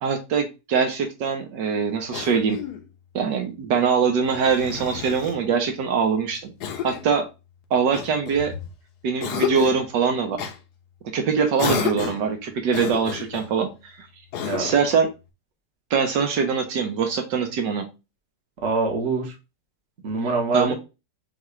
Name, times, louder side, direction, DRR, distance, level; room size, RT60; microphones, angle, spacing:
voice 1, 0.0-2.6 3.1-6.5 6.8-7.3 7.7-8.5 9.0-10.4 11.1-14.1 14.5-15.1 15.9-17.9 20.5-20.7, right 6 dB, 80° right, 4 dB, 1.5 m, -23 dB
Cough, 2.1-2.9 4.2-5.4 6.6-7.1 7.9-8.7 9.2-9.8 10.4-10.6 11.6-12.3 12.7-13.5 14.3-14.9, left 7 dB, 70° left, 1.2 m, -30 dB
voice 2, 14.4-14.7 18.6-19.3 20.0-20.7, right 3 dB, 45° right, 1 dB, 1.4 m, -24 dB
5.9 x 2.4 x 3.2 m, 0.26 s
omnidirectional pair, 1.9 m